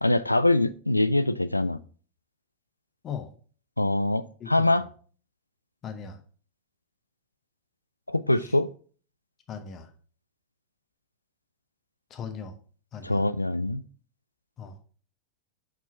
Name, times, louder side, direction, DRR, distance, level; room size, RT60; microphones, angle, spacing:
voice 1, 0.0-1.8 3.8-4.8 8.1-8.7 13.0-13.8, left 2 dB, 85° left, 15 dB, 0.3 m, -24 dB
voice 2, 4.4-4.7 5.8-6.2 8.4-8.6 9.5-9.9 12.1-12.6 12.9-13.3 14.6-14.8, left 6 dB, 30° left, 8 dB, 0.9 m, -38 dB
5.5 x 4.9 x 4.1 m, 0.42 s
figure-of-eight pair, 90°, 0 cm